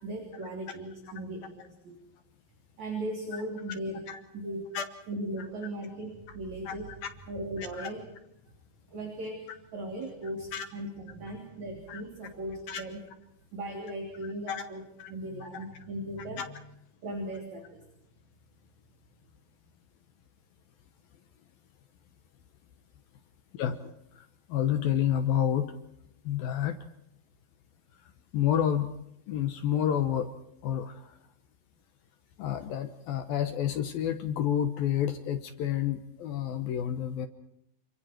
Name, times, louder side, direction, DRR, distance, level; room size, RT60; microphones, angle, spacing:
voice 1, 0.0-2.0 2.8-4.0 4.3-4.7 5.1-6.9 7.3-8.1 8.9-13.0 13.5-14.8 15.1-16.4 17.0-17.8, right 1 dB, 40° right, 3 dB, 4.0 m, -38 dB
voice 2, 7.6-7.9 10.5-10.7 11.9-12.0 12.7-12.8 14.5-14.6 15.0-15.1 16.4-16.5 23.5-25.7 26.2-26.8 28.3-28.9 29.3-30.3 30.6-31.2 32.4-37.3, left 10 dB, 70° left, 8 dB, 2.4 m, -29 dB
28.5 x 25.5 x 4.5 m, 0.80 s
omnidirectional pair, 5.4 m